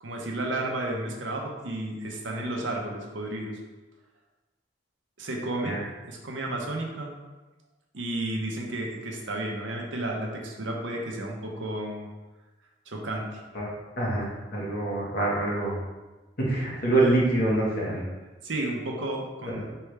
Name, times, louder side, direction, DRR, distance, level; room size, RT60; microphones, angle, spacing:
voice 1, 0.0-3.6 5.2-5.8 6.1-7.1 7.9-12.1 12.9-13.4 18.4-19.6, right 1 dB, 85° right, 0 dB, 0.8 m, -32 dB
voice 2, 14.0-15.8 16.4-18.0 19.5-19.6, right 2 dB, 55° left, -4 dB, 1.3 m, -25 dB
4.6 x 3.4 x 3.3 m, 1.2 s
head